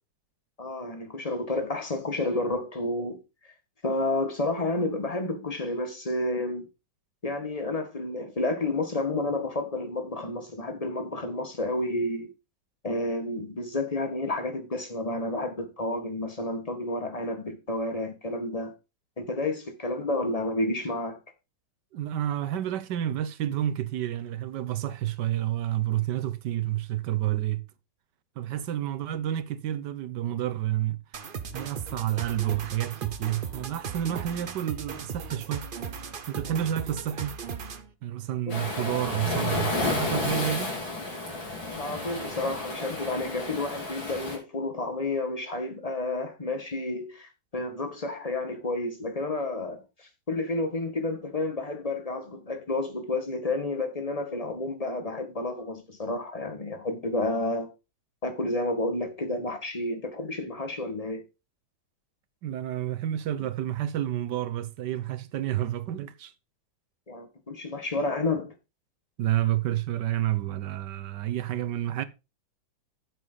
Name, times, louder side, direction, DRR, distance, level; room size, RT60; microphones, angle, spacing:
voice 1, 0.6-3.2 3.8-6.6 7.2-12.3 12.8-18.7 19.2-21.2 38.5-38.6 41.6-57.7 58.2-61.2 67.1-68.5, left 2 dB, 20° left, 1.9 m, -30 dB
voice 2, 21.9-27.6 28.4-31.0 31.5-35.7 36.3-37.3 38.0-40.8 62.4-66.3 69.2-72.0, right 12 dB, 70° right, 1.3 m, -29 dB
sound 1, 31.1-37.9, right 6 dB, 45° right, 0.6 m, -37 dB
Waves surf, 38.5-44.4, left 2 dB, 85° left, 4.6 m, -31 dB
9.2 x 8.1 x 4.0 m
omnidirectional pair, 2.0 m